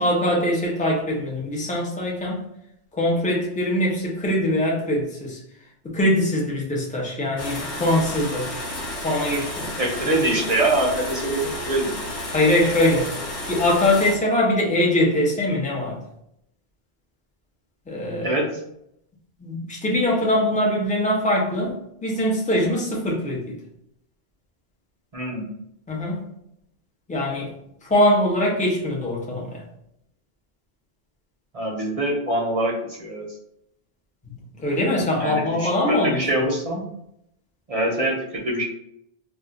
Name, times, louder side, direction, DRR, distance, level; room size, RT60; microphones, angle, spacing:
voice 1, 0.0-2.4 2.9-5.4 5.9-8.5 9.0-9.7 12.3-13.1 13.5-16.0 17.9-18.4 19.4-21.8 22.0-23.6 25.9-26.2 27.1-27.5 27.9-29.6 34.6-36.2, left 1 dB, 10° left, -2 dB, 0.4 m, -22 dB
sound 1, 7.4-14.1, left 1 dB, 80° left, 1.1 m, -32 dB
voice 2, 9.8-11.9 18.2-18.5 25.1-25.5 31.5-33.3 35.2-36.8 37.7-38.6, right 1 dB, 45° right, -1 dB, 0.5 m, -24 dB
2.4 x 2.3 x 3.8 m, 0.77 s
omnidirectional pair, 1.1 m